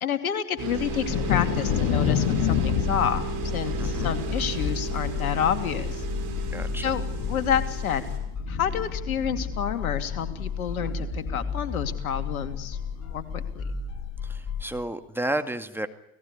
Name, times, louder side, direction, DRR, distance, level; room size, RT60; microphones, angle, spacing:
voice 1, 0.0-3.2 3.5-6.0 6.8-8.1 8.5-13.6, left 8 dB, 75° left, 9 dB, 2.5 m, -29 dB
sound 1, 0.6-8.2, right 7 dB, 50° right, 6.3 m, -35 dB
sound 2, 0.7-14.6, left 5 dB, 35° left, 4.3 m, -33 dB
Thunder, 1.1-10.5 10.8-11.5 11.9-12.0 12.4-12.6, left 10 dB, 55° left, 2.2 m, -30 dB
voice 2, 6.5-6.9 14.2-15.9, right 1 dB, 5° right, 8 dB, 2.0 m, -32 dB
29.0 x 18.0 x 9.9 m, 0.86 s
figure-of-eight pair, 75°, 43 cm